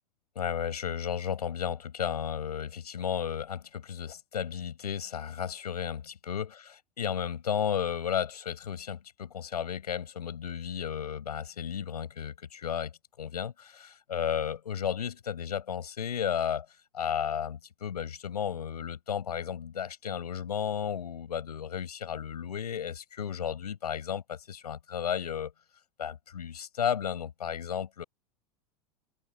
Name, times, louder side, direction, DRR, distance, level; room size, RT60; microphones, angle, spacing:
voice 1, 0.3-12.9 13.2-16.7 16.9-25.5 26.0-28.0, left 8 dB, 85° left, 6.3 m, -33 dB
open air
hypercardioid pair, 95°, 20 cm